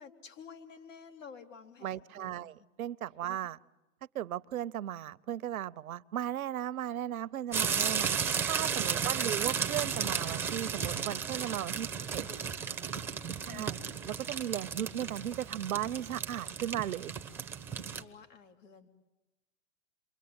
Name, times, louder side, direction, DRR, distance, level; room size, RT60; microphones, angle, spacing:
voice 1, 0.0-2.6 3.3-3.4 9.1-9.4 11.9-12.4 12.6-13.0 13.5-13.7 17.9-18.9, left 6 dB, 60° left, 3.6 m, -52 dB
voice 2, 1.8-3.6 4.1-8.2 8.5-12.2 13.4-13.8 14.1-17.1, right 11 dB, 80° right, 0.9 m, -36 dB
sound 1, 7.5-18.0, right 6 dB, 5° right, 0.9 m, -34 dB
28.5 x 23.5 x 8.8 m
hypercardioid pair, 145°, 42 cm